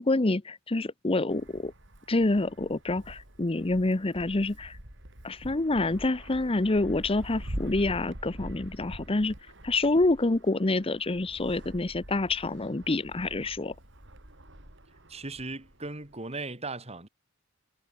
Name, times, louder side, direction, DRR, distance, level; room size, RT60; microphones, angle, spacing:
voice 1, 0.0-1.7 2.1-4.8 5.2-9.3 9.6-13.7, left 2 dB, 30° left, 0.8 m, -27 dB
Wind, 1.3-16.2, equal, 65° right, 6.5 m, -45 dB
voice 2, 15.1-17.1, right 3 dB, 30° right, 3.0 m, -37 dB
head